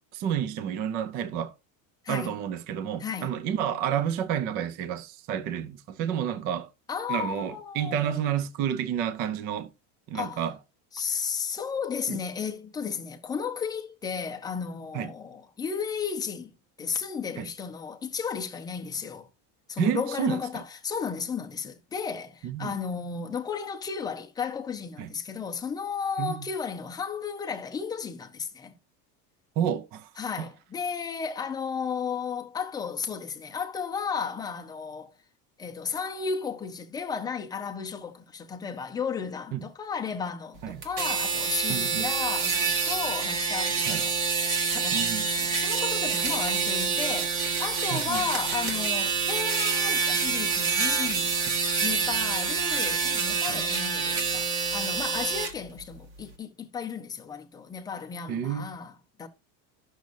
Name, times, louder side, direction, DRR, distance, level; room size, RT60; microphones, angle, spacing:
voice 1, 0.0-1.5 2.1-6.7 7.1-9.7 10.1-10.6 12.1-12.2 14.9-15.1 17.4-17.5 19.8-20.6 22.4-22.8 25.0-25.1 26.2-26.5 29.6-30.1 30.4-30.5 39.5-39.6 40.6-40.8 41.7-42.1 43.9-44.0 44.9-45.3 47.9-48.2 53.5-53.6 58.3-58.7, right 9 dB, 25° right, 0.3 m, -30 dB
voice 2, 3.0-3.4 6.9-8.3 10.1-10.4 10.9-16.5 16.8-19.3 19.7-28.8 30.2-35.1 35.6-44.2 44.7-51.4 51.8-58.9 59.2-59.3, left 6 dB, 10° left, 0.6 m, -34 dB
sound 1, 40.8-55.5, right 5 dB, 50° right, 1.6 m, -27 dB
12.0 x 6.3 x 2.6 m
cardioid pair, 175°, 41 cm